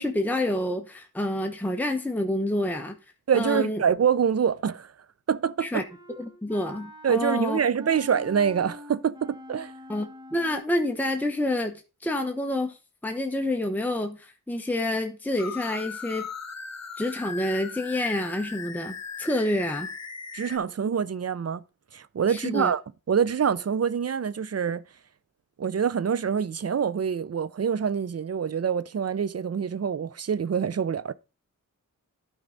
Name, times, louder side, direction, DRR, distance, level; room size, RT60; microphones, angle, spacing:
voice 1, 0.0-3.0 3.3-3.8 5.6-5.8 6.2-7.6 9.9-12.8 13.0-16.3 17.0-19.9 22.3-22.7, left 1 dB, 5° left, 1.0 m, -28 dB
voice 2, 3.3-4.9 5.3-5.8 7.0-9.7 20.3-21.6 21.9-22.8 23.1-24.8 25.6-31.1, right 7 dB, 50° right, 0.5 m, -25 dB
Wind instrument woodwind instrument, 5.9-10.7, left 1 dB, 15° right, 1.6 m, -45 dB
sound 1, 15.4-20.6, left 5 dB, 55° left, 1.2 m, -38 dB
12.5 x 4.7 x 3.9 m
wide cardioid pair, 80°, 33 cm